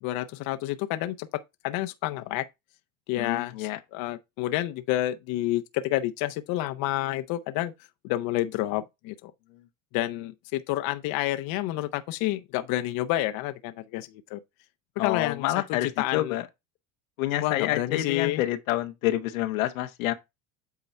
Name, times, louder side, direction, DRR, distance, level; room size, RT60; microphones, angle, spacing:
voice 1, 0.0-2.4 3.1-7.7 8.0-9.3 9.9-14.4 15.0-15.4 16.0-16.3 17.4-18.4, left 15 dB, 60° left, 0.8 m, -29 dB
voice 2, 3.1-3.8 9.5-9.6 15.0-16.5 17.2-20.1, left 14 dB, 90° left, 1.1 m, -28 dB
8.3 x 3.9 x 4.3 m
supercardioid pair, 95°, 40 cm